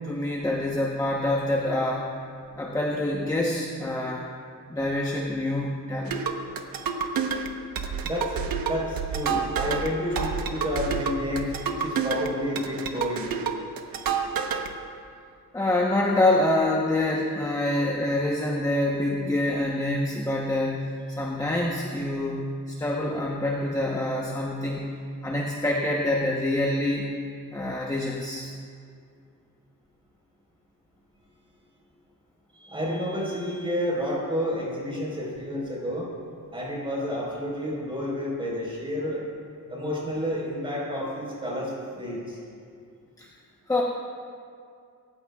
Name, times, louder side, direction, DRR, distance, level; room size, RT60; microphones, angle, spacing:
voice 1, 0.0-2.1 2.6-4.3 4.7-6.2 15.5-20.8 21.2-24.8 25.2-27.1 27.5-28.5 43.2-43.3 43.7-43.8, left 1 dB, 10° left, -2 dB, 1.0 m, -26 dB
sound 1, 6.1-14.7, right 6 dB, 90° right, 1.2 m, -29 dB
voice 2, 8.0-13.4 32.6-36.1 36.5-39.2 39.7-42.4, equal, 15° right, -4 dB, 4.4 m, -30 dB
27.5 x 15.0 x 2.4 m, 2.3 s
wide cardioid pair, 175°, 34 cm